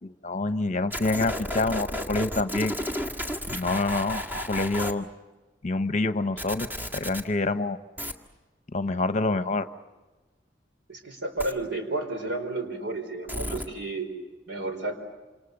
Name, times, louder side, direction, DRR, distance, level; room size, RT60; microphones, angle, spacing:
voice 1, 0.0-2.8 3.5-4.2 4.5-5.1 5.6-6.7 6.9-7.8 8.7-9.7, left 2 dB, 40° left, 10 dB, 1.0 m, -26 dB
sound 1, 0.9-4.9 6.4-7.2 8.0-8.1 11.4-11.5 13.3-13.7, left 1 dB, 10° right, 1.8 m, -32 dB
voice 2, 10.9-14.1 14.5-15.0, right 2 dB, 70° right, 5 dB, 4.6 m, -32 dB
27.5 x 27.5 x 6.7 m, 1.2 s
head